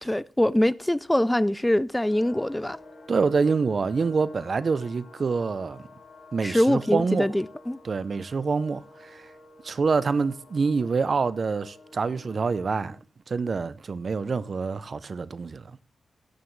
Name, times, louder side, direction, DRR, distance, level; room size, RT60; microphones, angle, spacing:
voice 1, 0.0-2.8 6.4-7.8, left 1 dB, 10° left, 0.4 m, -23 dB
sound 1, 2.0-12.9, left 2 dB, 65° left, 4.0 m, -50 dB
voice 2, 3.1-5.9 6.3-7.3 7.8-9.3 9.6-13.0 13.3-15.7, right 4 dB, 55° right, 0.6 m, -26 dB
15.0 x 9.3 x 3.2 m
cardioid pair, 70°, 0 cm